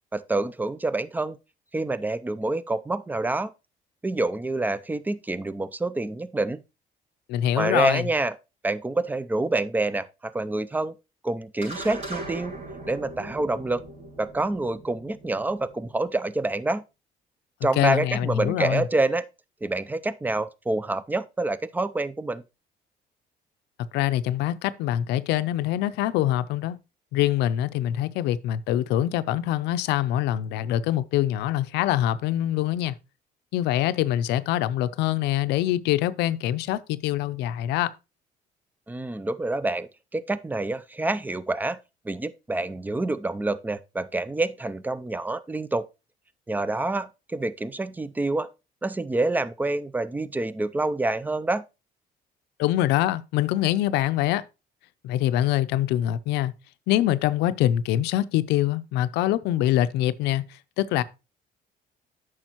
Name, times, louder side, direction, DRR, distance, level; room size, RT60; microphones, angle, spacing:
voice 1, 0.1-1.4 1.7-3.5 4.0-6.6 7.6-8.3 8.6-10.9 11.2-12.6 12.9-13.8 14.2-16.8 17.6-19.2 19.6-22.4 38.9-41.8 42.0-45.8 46.5-48.5 48.8-51.6, right 2 dB, 10° right, 0.4 m, -27 dB
voice 2, 7.3-8.1 17.8-18.9 23.9-26.8 27.1-33.0 33.5-37.9 52.6-54.4 55.0-56.5 56.9-61.0, left 13 dB, 90° left, 0.5 m, -24 dB
sound 1, 11.6-16.2, right 1 dB, 45° right, 5.4 m, -40 dB
8.9 x 6.2 x 3.0 m
cardioid pair, 110°, 17 cm